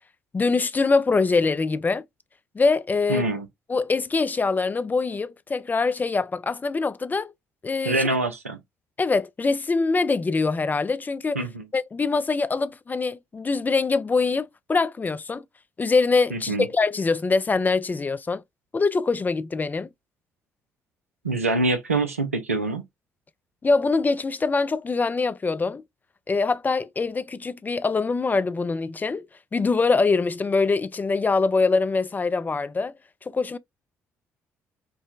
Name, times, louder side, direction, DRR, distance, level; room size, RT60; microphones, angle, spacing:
voice 1, 0.3-2.0 2.5-3.3 3.7-7.3 7.6-8.0 9.0-11.4 11.7-15.4 15.8-18.4 18.7-19.9 23.6-25.8 26.3-29.3 29.5-32.9 33.2-33.6, left 4 dB, 25° left, 0.3 m, -23 dB
voice 2, 3.1-3.5 7.8-8.6 11.3-11.6 16.3-16.7 21.2-22.8, right 2 dB, 90° right, 0.4 m, -25 dB
4.5 x 2.1 x 2.3 m
figure-of-eight pair, 45°, 7 cm